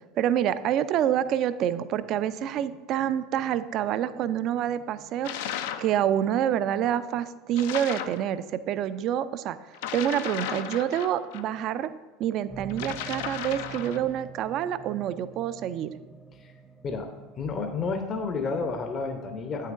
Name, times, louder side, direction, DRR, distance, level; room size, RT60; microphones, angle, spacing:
voice 1, 0.1-5.5 5.8-9.6 9.9-11.9 12.2-16.0, right 10 dB, 55° right, 14 dB, 0.3 m, -27 dB
sound 1, 5.2-5.9 7.6-8.2 9.7-11.4 12.7-14.1, left 9 dB, 70° left, 0.4 m, -35 dB
sound 2, 12.5-17.6, right 6 dB, 10° right, 0.6 m, -45 dB
voice 2, 17.4-19.7, left 4 dB, 40° left, 6 dB, 0.7 m, -31 dB
8.5 x 6.5 x 2.5 m, 1.3 s
hypercardioid pair, 80°, 0 cm